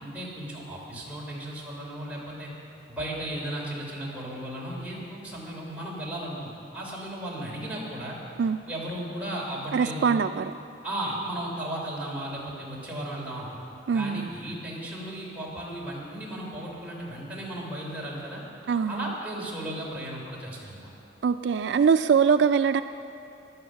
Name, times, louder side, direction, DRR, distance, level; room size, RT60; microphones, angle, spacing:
voice 1, 0.0-2.5 2.9-8.2 8.7-10.1 10.8-13.6 13.9-18.4 18.9-20.9, right 1 dB, 10° right, -5 dB, 3.2 m, -35 dB
voice 2, 9.7-10.5 13.9-14.3 18.7-19.1 21.2-22.8, right 6 dB, 65° right, 10 dB, 0.3 m, -23 dB
17.0 x 11.0 x 6.2 m, 2.7 s
head